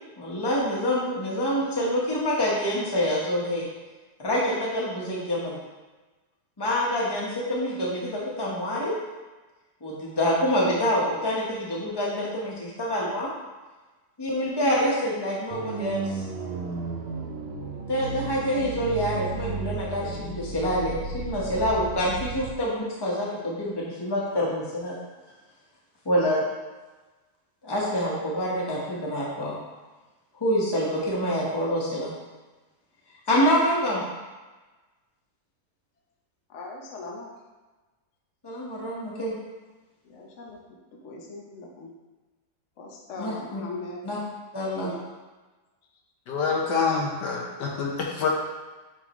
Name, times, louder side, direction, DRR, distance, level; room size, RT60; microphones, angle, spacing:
voice 1, 0.2-3.7 4.2-5.6 6.6-8.9 9.8-13.3 14.2-16.2 17.9-25.0 26.0-26.4 27.6-29.6 30.4-32.1 33.3-34.0 38.4-39.3 43.2-43.6 44.0-44.2 44.5-44.9, equal, 15° left, -5 dB, 1.1 m, -26 dB
sound 1, 15.5-22.5, right 5 dB, 70° right, 0.6 m, -34 dB
voice 2, 36.5-37.3 40.1-40.6 41.0-41.9 42.8-44.0 44.8-45.0 46.5-46.9, left 3 dB, 55° left, -1 dB, 1.1 m, -40 dB
voice 3, 46.3-48.3, left 5 dB, 85° left, -1 dB, 1.6 m, -26 dB
8.7 x 3.7 x 3.0 m, 1.2 s
omnidirectional pair, 1.8 m